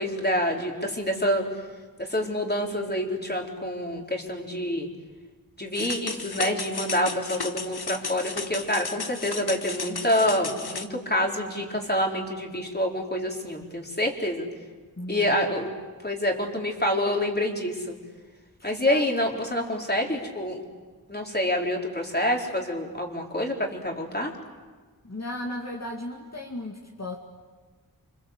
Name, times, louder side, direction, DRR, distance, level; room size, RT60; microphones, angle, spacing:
voice 1, 0.0-1.5 2.0-4.9 5.6-14.5 15.1-15.7 16.0-18.0 18.6-20.6 21.1-24.3, left 1 dB, 25° left, 1 dB, 4.3 m, -27 dB
sound 1, 5.7-10.9, left 4 dB, 80° left, 1.4 m, -34 dB
voice 2, 15.0-15.5 18.8-19.1 25.0-27.2, left 2 dB, 45° left, -1 dB, 2.4 m, -35 dB
29.0 x 25.0 x 8.1 m, 1.4 s
wide cardioid pair, 55°, 38 cm